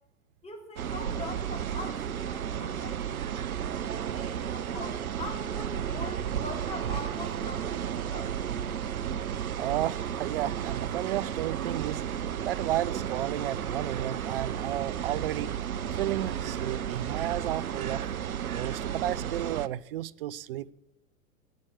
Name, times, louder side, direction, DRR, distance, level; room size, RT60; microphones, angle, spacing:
voice 1, 0.4-3.2 4.1-8.3, left 2 dB, 15° left, 3.2 m, -42 dB
sound 1, 0.8-19.7, right 9 dB, 75° right, 0.8 m, -33 dB
voice 2, 9.6-12.0 12.4-15.5 16.0-18.0 18.5-20.7, right 13 dB, 40° right, 0.4 m, -32 dB
15.5 x 8.8 x 7.6 m
figure-of-eight pair, 95°, 43 cm